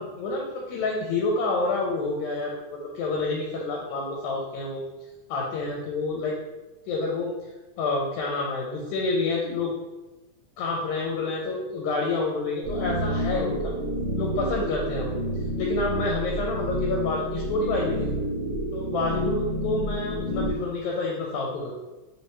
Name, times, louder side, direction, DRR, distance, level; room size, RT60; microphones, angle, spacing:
voice 1, 0.0-4.8 5.3-6.3 6.9-7.3 7.8-9.7 10.6-13.7 14.2-15.2 15.6-18.1 18.7-21.7, left 3 dB, 80° left, -1 dB, 1.9 m, -28 dB
sound 1, 12.6-20.5, equal, 60° left, 1.4 m, -29 dB
4.4 x 3.3 x 3.0 m, 1.1 s
omnidirectional pair, 3.6 m